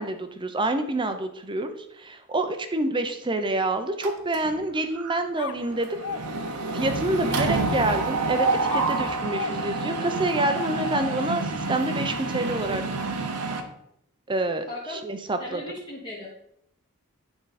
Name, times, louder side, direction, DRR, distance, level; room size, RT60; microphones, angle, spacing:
voice 1, 0.0-6.0 6.7-12.8 14.3-15.6, right 2 dB, 20° right, 8 dB, 0.6 m, -27 dB
Mechanisms, 4.0-4.6 5.0-5.2 5.4-13.6, right 3 dB, 90° right, 0.9 m, -28 dB
sound 1, 5.4-8.2 8.7-11.6, left 7 dB, 60° left, 0.4 m, -39 dB
voice 2, 14.7-15.0 15.4-16.3, left 2 dB, 20° left, -6 dB, 1.1 m, -36 dB
9.4 x 3.8 x 4.1 m, 0.77 s
head